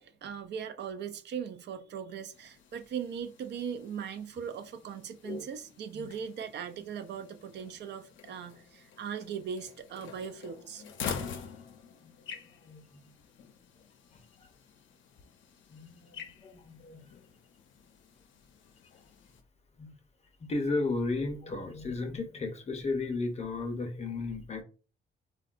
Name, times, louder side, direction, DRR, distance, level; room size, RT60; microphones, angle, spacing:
voice 1, 0.0-10.8, right 7 dB, 60° right, 0.4 m, -39 dB
sound 1, 2.3-19.4, left 7 dB, 70° left, 0.5 m, -47 dB
voice 2, 10.6-11.1 12.0-12.4 12.6-13.1 14.1-14.5 15.7-17.0 19.8-20.0 20.4-24.6, left 3 dB, 35° left, 0.6 m, -35 dB
3.5 x 2.2 x 2.4 m
cardioid pair, 90°, 20 cm